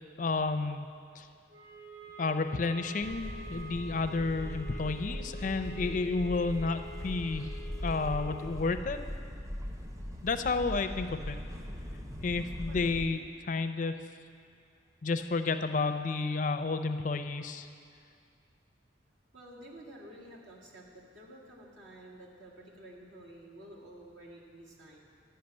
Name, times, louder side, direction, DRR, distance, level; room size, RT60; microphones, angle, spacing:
voice 1, 0.2-0.9 1.2-1.3 2.2-7.6 7.8-9.0 10.2-11.4 12.2-13.2 13.5-14.0 15.0-17.7, left 3 dB, 40° left, 8 dB, 0.4 m, -31 dB
sound 1, 1.5-8.5, right 1 dB, 50° right, 2.7 m, -48 dB
sound 2, 3.0-13.1, equal, 15° right, 0.5 m, -40 dB
voice 2, 12.7-13.2 19.3-25.0, right 1 dB, 80° right, -4 dB, 2.1 m, -51 dB
11.5 x 5.6 x 8.7 m, 2.3 s
head